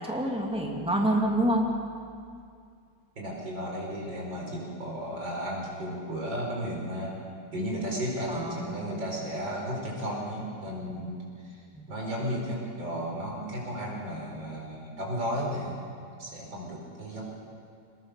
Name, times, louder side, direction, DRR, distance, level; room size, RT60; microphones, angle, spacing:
voice 1, 0.0-1.7 8.3-8.7 11.7-11.9, right 1 dB, 5° right, -1 dB, 2.6 m, -27 dB
voice 2, 3.2-7.2 7.5-11.6 11.9-15.8 16.2-17.2, equal, 85° right, -2 dB, 5.8 m, -34 dB
23.5 x 20.0 x 6.9 m, 2.3 s
omnidirectional pair, 2.0 m